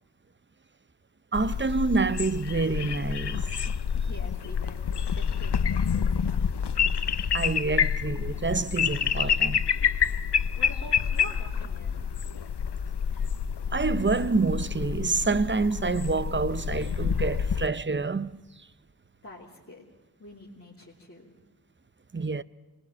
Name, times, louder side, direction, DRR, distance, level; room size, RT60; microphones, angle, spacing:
sound 1, 1.3-17.7, left 7 dB, 90° left, 0.8 m, -28 dB
voice 1, 1.3-3.5 7.3-9.7 13.7-18.4 22.1-22.4, right 4 dB, 30° right, 0.7 m, -27 dB
voice 2, 3.9-6.6 10.5-12.0 19.2-19.9 20.2-21.3, left 1 dB, 35° left, 3.3 m, -46 dB
24.5 x 20.5 x 7.5 m
wide cardioid pair, 50°, 39 cm